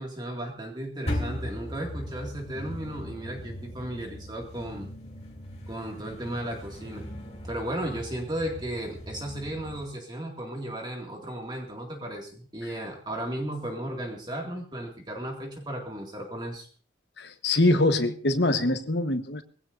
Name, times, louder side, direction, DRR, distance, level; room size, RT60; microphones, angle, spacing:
voice 1, 0.0-4.9 5.7-7.1 7.5-16.7, right 1 dB, 25° right, 1 dB, 2.1 m, -35 dB
sound 1, 1.1-9.9, left 1 dB, 35° left, 3.2 m, -38 dB
voice 2, 17.2-19.4, left 2 dB, 70° left, 8 dB, 1.2 m, -24 dB
21.0 x 16.5 x 2.6 m, 0.40 s
head